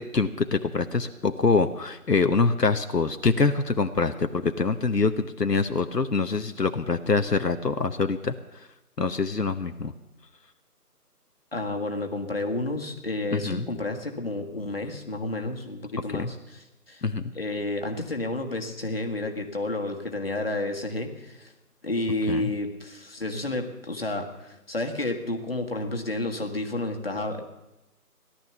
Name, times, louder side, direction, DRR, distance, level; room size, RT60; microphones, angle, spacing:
voice 1, 0.0-8.7 9.0-9.9 13.3-13.7 16.1-16.3 17.0-17.3 22.3-22.5, left 4 dB, 80° left, 8 dB, 1.2 m, -25 dB
voice 2, 11.5-16.4 16.9-17.0 17.3-21.5 21.8-27.4, left 2 dB, 35° left, 3 dB, 1.7 m, -30 dB
17.5 x 12.0 x 6.9 m, 0.96 s
figure-of-eight pair, 170°, 48 cm